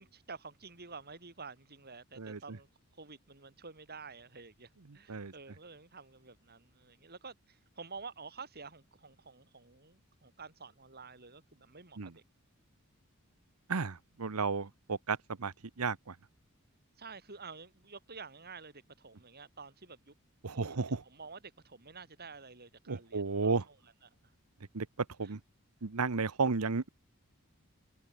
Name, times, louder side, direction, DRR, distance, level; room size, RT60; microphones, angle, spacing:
voice 1, 0.0-12.2 17.0-20.1 20.5-23.8 24.0-24.3 25.2-25.4, right 4 dB, 45° right, 5.9 m, -50 dB
voice 2, 13.7-16.1 20.4-21.0 22.9-23.6 24.7-24.9 25.2-25.4 25.8-26.9, right 4 dB, 85° right, 1.0 m, -33 dB
head